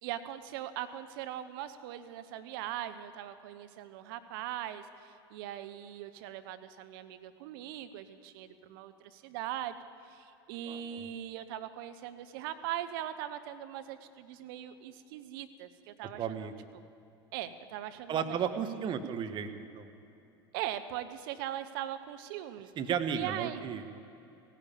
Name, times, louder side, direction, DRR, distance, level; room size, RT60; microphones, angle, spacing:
voice 1, 0.0-9.8 10.0-16.5 17.3-18.4 18.7-18.9 20.5-22.7 23.1-23.7, right 11 dB, 60° right, 10 dB, 1.0 m, -40 dB
voice 2, 10.7-11.1 16.2-16.5 18.1-19.5 19.7-19.9 22.8-24.0, right 7 dB, 40° right, 8 dB, 1.3 m, -34 dB
16.5 x 10.0 x 8.6 m, 2.9 s
hypercardioid pair, 85°, 13 cm